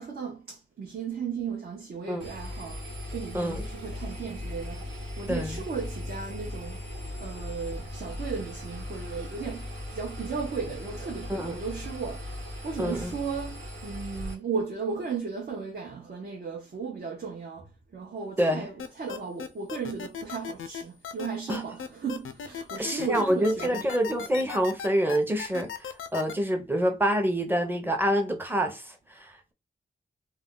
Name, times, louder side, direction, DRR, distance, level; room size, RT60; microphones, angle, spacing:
voice 1, 0.0-2.8 3.1-4.8 5.2-6.8 7.2-12.2 12.6-17.6 17.9-18.7 19.0-23.8, right 5 dB, 55° right, 0.6 m, -35 dB
Engine, 2.2-14.3, left 1 dB, 90° right, 1.3 m, -38 dB
voice 2, 3.3-3.7 5.3-5.6 11.3-11.6 12.8-13.2 18.4-18.7 21.5-21.6 22.8-29.5, equal, 10° right, 0.6 m, -27 dB
sound 1, 18.8-26.3, left 7 dB, 90° left, 0.4 m, -36 dB
2.3 x 2.2 x 3.6 m
wide cardioid pair, 115°, 20 cm